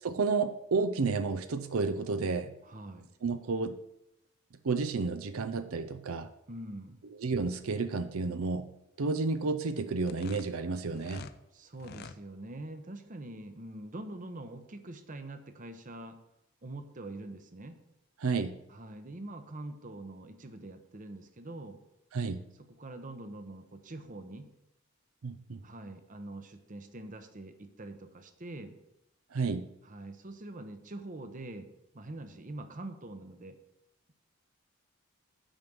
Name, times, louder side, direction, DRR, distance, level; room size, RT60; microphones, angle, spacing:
voice 1, 0.0-2.5 3.2-3.8 4.6-6.3 7.2-8.7 9.0-11.3 18.2-18.6 22.1-22.5 25.2-25.6 29.3-29.7, right 4 dB, 80° right, 10 dB, 0.6 m, -31 dB
voice 2, 2.6-3.1 6.5-7.0 11.5-16.2 16.6-17.8 18.7-21.8 22.7-24.5 25.6-28.8 29.8-31.7 31.9-33.6, right 2 dB, 40° right, 8 dB, 0.8 m, -44 dB
sound 1, 10.0-11.4 11.7-12.2, left 5 dB, 50° left, 0.5 m, -47 dB
9.0 x 5.3 x 6.1 m, 0.84 s
head